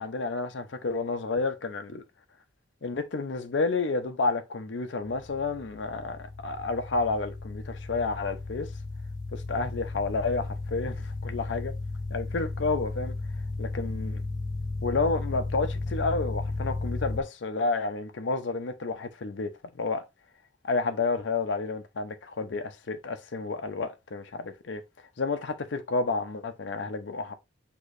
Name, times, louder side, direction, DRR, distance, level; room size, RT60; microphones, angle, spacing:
voice 1, 0.0-2.0 2.8-8.7 9.3-11.7 12.1-13.1 13.6-14.2 14.8-19.5 19.7-20.0 20.6-24.8 25.2-27.3, left 3 dB, 75° left, 0.6 m, -30 dB
sound 1, 5.0-17.2, left 3 dB, 20° left, 2.0 m, -34 dB
6.3 x 3.0 x 2.5 m
head